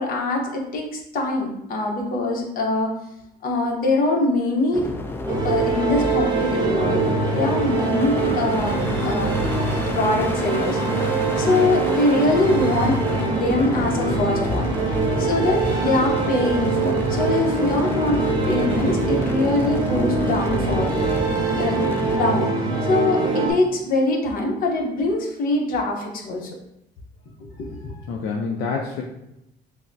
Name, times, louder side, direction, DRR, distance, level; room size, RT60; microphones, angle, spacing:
voice 1, 0.0-2.9 3.4-4.9 5.3-7.0 7.3-8.8 9.0-9.4 9.9-10.8 11.4-13.0 13.3-14.7 15.2-18.2 18.5-20.9 21.6-22.5 22.9-26.5 27.4-27.8, left 2 dB, 55° left, 0 dB, 0.8 m, -23 dB
sound 1, 4.7-22.2, left 2 dB, 15° left, 0.4 m, -31 dB
sound 2, 5.3-23.5, right 3 dB, 25° right, 0.8 m, -23 dB
voice 2, 27.9-29.0, left 4 dB, 80° left, 0 dB, 0.5 m, -28 dB
5.5 x 2.1 x 2.6 m, 0.84 s
cardioid pair, 110°, 17 cm